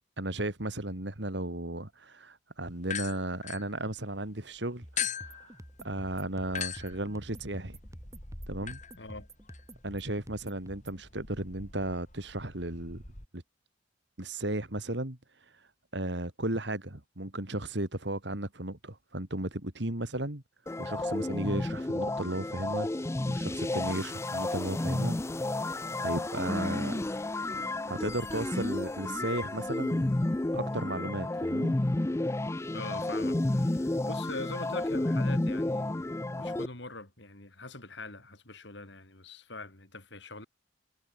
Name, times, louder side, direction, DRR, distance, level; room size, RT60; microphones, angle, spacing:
voice 1, 0.2-7.8 8.5-8.8 9.8-13.0 13.3-13.4 14.2-15.2 15.5-15.6 15.9-20.4 20.8-25.2 26.0-27.0 27.9-30.2 30.5-31.7, right 1 dB, 60° right, 2.7 m, -35 dB
sound 1, 2.8-4.3 5.0-13.3, left 8 dB, 40° left, 5.6 m, -41 dB
sound 2, 4.8-11.0, right 1 dB, 15° right, 3.2 m, -49 dB
voice 2, 9.0-9.3 32.7-36.1 36.4-40.5, left 2 dB, 65° left, 4.4 m, -43 dB
sound 3, 20.7-36.7, left 2 dB, 15° left, 0.4 m, -31 dB
head